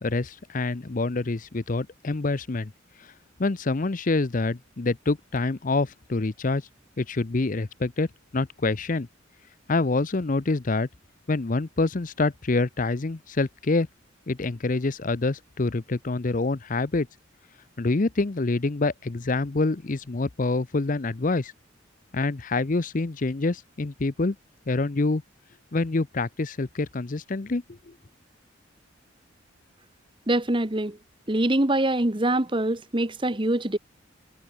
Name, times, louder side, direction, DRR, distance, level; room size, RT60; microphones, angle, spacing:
voice 1, 0.0-2.7 3.0-3.1 3.4-6.6 7.0-8.1 8.3-9.1 9.7-10.9 11.3-13.9 14.3-17.1 17.8-21.5 22.1-24.4 24.7-25.2 25.7-27.9, left 3 dB, 40° left, 0.6 m, -26 dB
voice 2, 30.3-31.0 31.3-33.8, right 1 dB, 25° right, 1.3 m, -24 dB
head